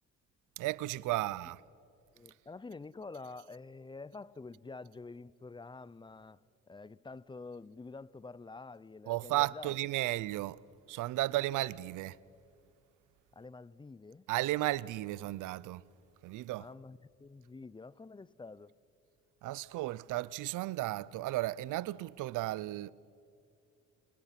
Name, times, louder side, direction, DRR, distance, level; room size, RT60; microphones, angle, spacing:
voice 1, 0.6-1.6 9.1-10.6 10.9-12.2 14.3-15.8 16.2-16.7 19.4-22.9, right 17 dB, 85° right, 0.6 m, -34 dB
voice 2, 2.1-6.4 6.7-9.8 13.3-14.3 16.6-18.7, left 3 dB, 15° left, 0.5 m, -48 dB
29.0 x 25.5 x 5.9 m
cardioid pair, 90°, 30 cm